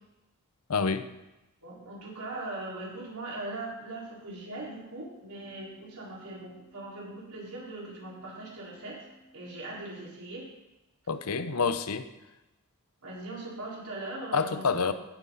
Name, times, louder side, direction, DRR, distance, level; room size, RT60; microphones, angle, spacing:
voice 1, 0.7-1.1 11.1-12.1 14.3-14.9, left 5 dB, 85° left, 11 dB, 0.8 m, -27 dB
voice 2, 1.6-9.0 9.3-10.5 13.0-14.9, right 2 dB, 85° right, -5 dB, 4.6 m, -40 dB
Organ, 4.2-10.8, equal, 50° left, 3.8 m, -61 dB
15.5 x 9.6 x 4.1 m, 0.99 s
head